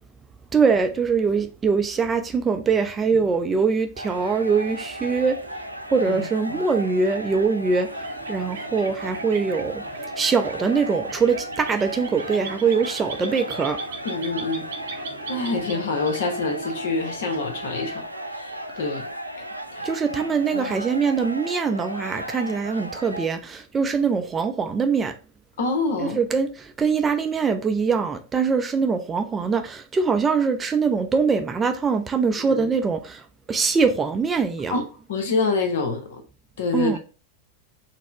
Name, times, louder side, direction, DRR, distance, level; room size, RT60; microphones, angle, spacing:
voice 1, 0.5-5.4 5.9-7.9 8.3-9.8 10.2-13.8 19.8-25.1 26.0-33.2 33.5-34.8 36.7-37.0, right 5 dB, 20° right, 0.4 m, -23 dB
sound 1, 4.0-23.3, equal, 85° right, 0.3 m, -35 dB
voice 2, 6.1-6.7 14.0-14.7 15.3-18.0 18.3-19.1 19.4-19.5 19.7-19.9 20.5-20.7 25.6-26.2 32.3-32.7 34.7-34.8 35.1-36.2 36.6-37.0, left 3 dB, 60° left, 0.9 m, -26 dB
sound 2, 7.7-18.1, right 6 dB, 60° right, 0.7 m, -40 dB
4.1 x 2.1 x 4.5 m
figure-of-eight pair, 90°, 0 cm